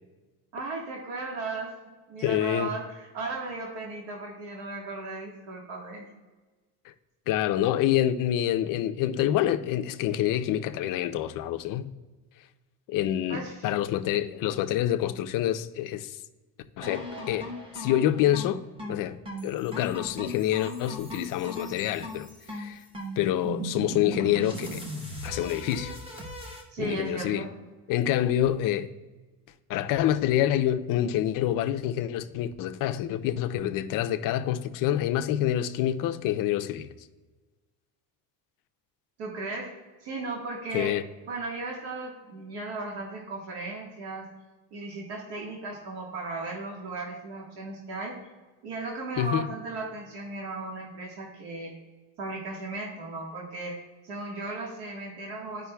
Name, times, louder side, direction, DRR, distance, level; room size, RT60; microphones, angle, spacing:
voice 1, 0.5-6.1 13.3-13.7 26.7-27.5 39.2-39.7 40.0-41.0 41.3-44.3 44.7-48.2 48.6-51.7 52.2-53.8 54.0-55.7, right 3 dB, 65° right, 1.6 m, -36 dB
voice 2, 2.2-2.7 7.3-11.9 12.9-16.2 16.8-19.2 19.4-22.8 23.2-24.8 25.2-26.0 26.8-27.4 27.9-28.9 29.7-36.9 40.7-41.0 49.2-49.5, left 12 dB, 50° left, 0.5 m, -27 dB
sound 1, 16.8-26.6, equal, 10° right, 0.9 m, -38 dB
13.0 x 5.1 x 2.2 m
cardioid pair, 160°, 43 cm